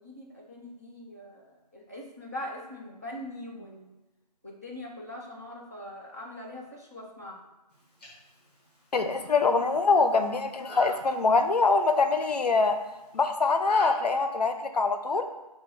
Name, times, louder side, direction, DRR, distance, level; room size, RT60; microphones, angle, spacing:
voice 1, 0.0-3.9 4.4-7.4, left 1 dB, 25° right, -2 dB, 0.3 m, -42 dB
sound 1, 7.7-13.9, left 1 dB, 15° left, 0.8 m, -45 dB
voice 2, 8.9-12.8 13.1-15.3, left 4 dB, 70° left, 7 dB, 0.4 m, -24 dB
5.0 x 2.2 x 2.7 m, 1.1 s
figure-of-eight pair, 160°, 21 cm